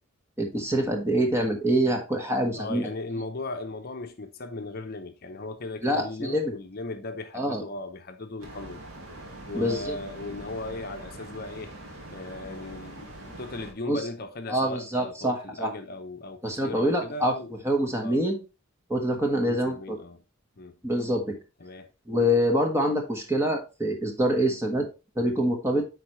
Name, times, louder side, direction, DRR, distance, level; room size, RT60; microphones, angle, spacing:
voice 1, 0.4-2.9 5.8-6.5 7.3-7.6 9.5-10.0 13.9-14.0 14.5-15.7 16.4-17.3 17.6-18.4 18.9-20.0 20.8-21.4 22.1-24.9 25.1-25.8, equal, 15° right, 1.3 m, -25 dB
voice 2, 2.5-8.8 9.5-11.7 12.1-17.6 18.0-18.2 19.3-20.2 20.6-20.7 21.6-21.9, left 2 dB, 50° left, 0.7 m, -37 dB
sound 1, 8.4-13.7, right 1 dB, 80° right, 2.1 m, -43 dB
9.4 x 4.1 x 3.1 m
head